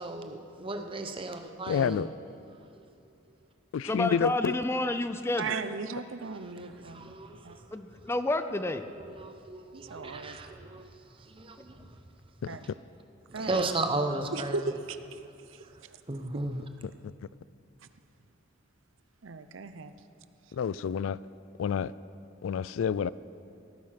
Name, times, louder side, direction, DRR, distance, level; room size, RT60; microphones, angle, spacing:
voice 1, 0.0-2.0 6.4-7.5 7.9-8.0 8.9-10.9 11.3-11.8 13.3-14.6 16.1-16.7, right 2 dB, 25° right, 6 dB, 0.9 m, -35 dB
voice 2, 1.7-2.1 3.7-4.5 12.4-12.6 20.5-21.2 21.6-21.9 22.4-23.1, left 7 dB, 80° left, 18 dB, 0.3 m, -28 dB
voice 3, 3.9-5.5 7.7-8.8, left 2 dB, 15° left, 10 dB, 0.5 m, -29 dB
voice 4, 5.4-7.1 7.4-7.6 9.7-10.4 12.5-12.7 13.3-13.7 14.3-15.2 15.5-16.0 16.3-16.4 19.2-19.9, right 4 dB, 75° right, 11 dB, 0.6 m, -37 dB
17.0 x 9.4 x 5.8 m, 2.6 s
head